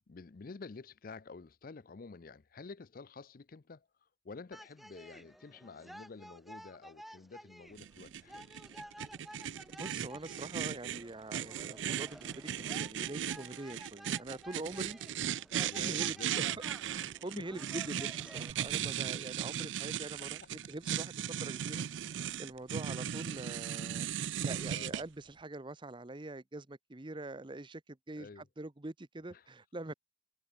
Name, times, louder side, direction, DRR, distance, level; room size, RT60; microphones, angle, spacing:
voice 1, 0.1-3.9 4.2-8.5 15.7-16.6 17.3-17.6 20.2-20.5 24.6-25.0 28.1-28.5 29.3-29.5, left 4 dB, 50° left, 0.5 m, -49 dB
sound 1, 4.5-18.5, equal, ahead, 0.5 m, -53 dB
sound 2, 7.8-25.0, right 9 dB, 80° right, 0.4 m, -37 dB
voice 2, 9.7-16.5 16.9-21.1 21.4-24.1 24.4-29.9, right 2 dB, 25° right, 0.8 m, -44 dB
head